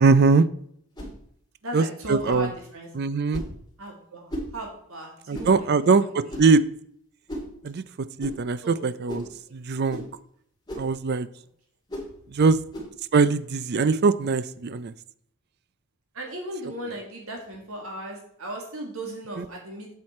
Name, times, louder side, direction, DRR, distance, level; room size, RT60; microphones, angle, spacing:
voice 1, 0.0-0.4 1.7-2.5 2.9-3.4 5.3-6.6 7.6-7.8 8.2-9.3 9.5-10.0 10.8-11.3 12.3-12.6 13.1-14.9 19.4-19.5, right 4 dB, 45° right, 16 dB, 0.4 m, -21 dB
sound 1, 0.9-1.2 2.3-2.5 3.3-3.6 4.3-4.5 5.3-5.6 6.3-6.6 7.3-7.5 8.2-8.4 9.1-9.3 9.9-10.1 10.7-10.9 11.9-12.1 12.7-12.9, equal, 20° left, 2.4 m, -35 dB
voice 2, 1.6-2.9 3.8-6.4 8.6-8.8 16.1-19.9, right 1 dB, 65° right, 1 dB, 1.9 m, -37 dB
7.6 x 7.6 x 4.2 m, 0.68 s
head